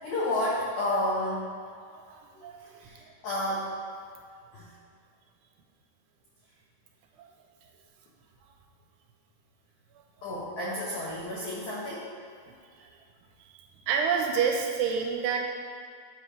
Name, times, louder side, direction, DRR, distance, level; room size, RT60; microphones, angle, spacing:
voice 1, 0.0-1.4 2.8-3.7 4.5-4.7 10.2-12.1, left 1 dB, 80° left, -7 dB, 1.7 m, -31 dB
voice 2, 1.9-2.9 7.2-7.3 12.8-12.9 13.4-13.6 13.9-15.4, right 6 dB, 90° right, 1 dB, 2.9 m, -29 dB
8.4 x 3.3 x 5.8 m, 2.2 s
omnidirectional pair, 4.8 m